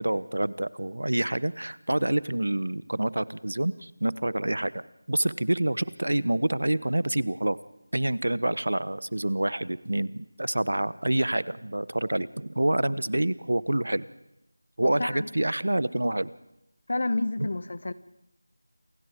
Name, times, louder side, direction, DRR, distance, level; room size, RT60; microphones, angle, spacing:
voice 1, 0.0-4.8 5.1-7.6 7.9-14.0 14.8-16.3 17.4-17.5, right 1 dB, 80° right, 18 dB, 1.0 m, -27 dB
voice 2, 14.8-15.3 16.9-17.9, left 2 dB, 45° left, 16 dB, 1.0 m, -29 dB
28.5 x 27.0 x 3.6 m, 0.86 s
figure-of-eight pair, 175°, 0 cm